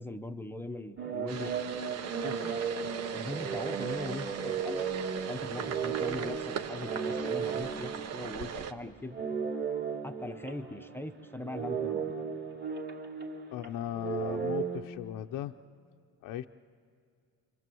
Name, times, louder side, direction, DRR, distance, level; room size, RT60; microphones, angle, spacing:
voice 1, 0.0-1.5 2.2-2.5 3.1-4.8 5.3-9.2 10.0-12.1, left 1 dB, 5° left, 7 dB, 0.8 m, -40 dB
sound 1, 1.0-8.8 9.1-14.8, right 6 dB, 30° right, 2.6 m, -35 dB
sound 2, 1.3-8.7, right 7 dB, 45° right, 1.1 m, -39 dB
voice 2, 13.5-15.5 16.2-16.5, left 12 dB, 65° left, 5 dB, 0.7 m, -37 dB
28.5 x 25.5 x 7.8 m, 2.3 s
cardioid pair, 150°, 35 cm